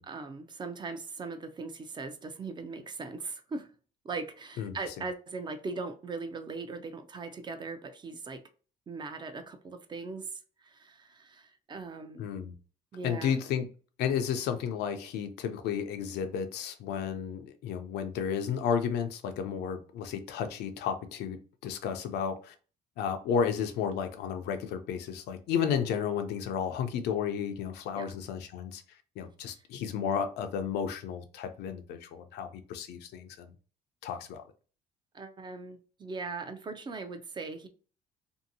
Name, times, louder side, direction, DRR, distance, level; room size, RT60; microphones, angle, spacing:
voice 1, 0.0-3.7 4.0-8.4 8.9-12.3 12.9-13.3 28.0-28.1 35.1-37.7, right 4 dB, 25° right, 0.4 m, -39 dB
voice 2, 12.2-12.5 13.0-13.7 14.0-22.5 23.0-28.8 29.2-33.5 34.0-34.4, left 7 dB, 80° left, 0.5 m, -32 dB
2.7 x 2.6 x 2.6 m
cardioid pair, 110°, 17 cm